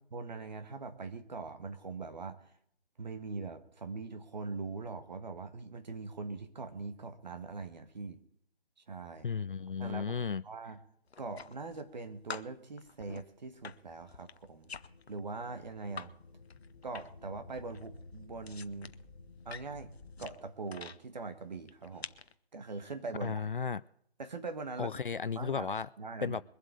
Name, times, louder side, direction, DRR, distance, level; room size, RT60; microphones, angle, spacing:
voice 1, 0.1-2.5 3.0-8.2 8.9-9.3 9.8-10.8 11.2-16.1 16.8-18.9 19.4-19.9 20.2-22.1 22.5-23.3 24.2-25.0 25.3-26.4, right 3 dB, 45° right, 8 dB, 1.7 m, -42 dB
voice 2, 9.2-10.4 23.2-23.8 24.8-25.9 26.2-26.4, left 6 dB, 55° left, 19 dB, 0.4 m, -34 dB
sound 1, 11.1-12.0 12.3-16.1 16.4-17.3 17.6-21.0 21.6-22.3, left 5 dB, 80° left, 0.8 m, -47 dB
sound 2, 14.6-20.3, left 3 dB, 20° left, 1.2 m, -54 dB
23.0 x 7.9 x 4.8 m, 0.67 s
figure-of-eight pair, 165°, 32 cm